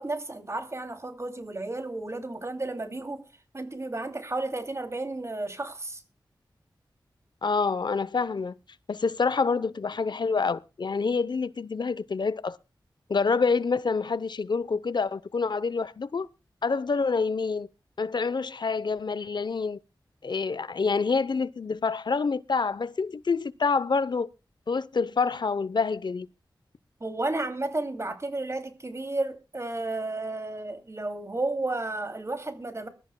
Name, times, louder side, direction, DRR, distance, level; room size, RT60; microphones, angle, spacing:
voice 1, 0.0-3.2 3.5-6.0 27.0-32.9, right 2 dB, 35° right, 2.7 m, -32 dB
voice 2, 7.4-8.5 8.9-12.6 13.1-16.3 16.6-17.7 18.0-19.8 20.2-24.3 24.7-26.3, left 4 dB, 65° left, 0.7 m, -27 dB
23.5 x 13.0 x 2.2 m
wide cardioid pair, 70°, 8 cm